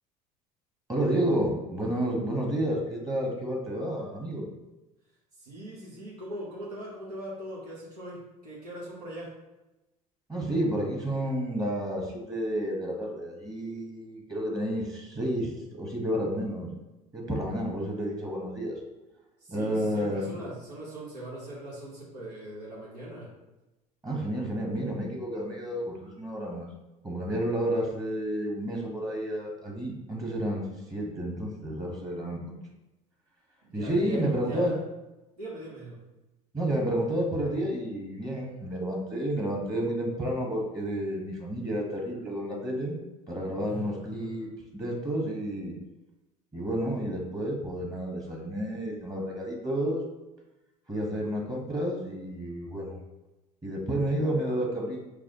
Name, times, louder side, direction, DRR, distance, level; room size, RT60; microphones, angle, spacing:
voice 1, 0.9-4.5 10.3-16.7 17.1-18.7 19.5-20.3 24.0-26.7 27.0-32.4 33.7-34.7 36.5-43.0 43.3-45.7 46.5-50.0 50.9-53.0 53.6-55.0, right 1 dB, 20° right, -1 dB, 1.2 m, -30 dB
voice 2, 5.3-9.4 19.4-23.3 33.6-34.8 35.4-36.0 43.6-44.5, right 1 dB, 85° right, -7 dB, 1.1 m, -41 dB
4.8 x 2.1 x 3.6 m, 1.0 s
hypercardioid pair, 70°, 19 cm